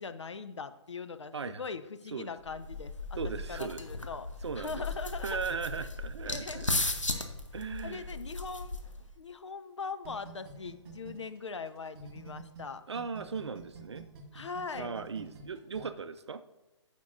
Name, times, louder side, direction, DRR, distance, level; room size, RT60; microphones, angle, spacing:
voice 1, 0.0-3.2 3.5-4.3 4.6-5.4 5.8-5.9 6.2-6.6 7.1-7.3 7.8-8.8 9.2-12.8 14.3-15.0, left 5 dB, 70° left, 10 dB, 0.6 m, -41 dB
sound 1, 2.5-9.1, left 2 dB, 85° left, 0.9 m, -36 dB
voice 2, 3.2-3.8 4.4-4.8 5.2-6.8 7.5-8.1 12.9-14.1 14.7-16.4, right 5 dB, 65° right, 12 dB, 0.5 m, -37 dB
sound 2, 10.0-12.6 13.0-15.8, right 6 dB, 40° right, 1.8 m, -48 dB
15.0 x 5.2 x 2.6 m, 1.0 s
figure-of-eight pair, 130°, 16 cm